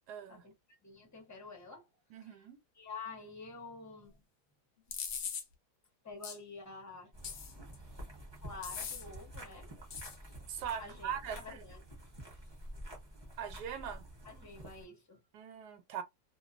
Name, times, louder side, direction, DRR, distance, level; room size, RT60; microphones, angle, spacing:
voice 1, 0.1-0.4 2.1-2.6 10.5-11.6 13.4-14.1 15.3-16.0, right 8 dB, 80° right, 1.2 m, -41 dB
voice 2, 0.8-1.9 2.2-2.3 2.8-4.2 6.0-7.1 8.4-9.7 10.8-11.8 14.2-15.2, left 4 dB, 15° left, 0.6 m, -48 dB
sound 1, 4.9-5.4 6.2-6.4 7.2-7.8 8.6-9.0 9.9-10.2, left 7 dB, 65° left, 0.6 m, -40 dB
sound 2, 7.1-14.8, right 1 dB, 25° right, 0.6 m, -49 dB
2.5 x 2.4 x 2.4 m
omnidirectional pair, 1.8 m